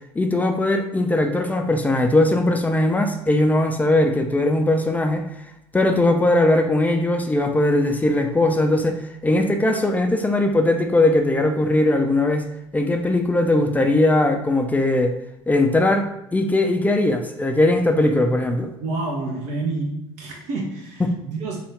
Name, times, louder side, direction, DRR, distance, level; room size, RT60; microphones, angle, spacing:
voice 1, 0.2-5.3 5.7-12.4 12.7-15.2 15.5-18.7 21.0-21.1, left 2 dB, 10° left, 4 dB, 0.4 m, -19 dB
voice 2, 18.8-21.6, right 3 dB, 55° right, -1 dB, 0.7 m, -28 dB
4.0 x 2.3 x 3.3 m, 0.85 s
figure-of-eight pair, 65°, 14 cm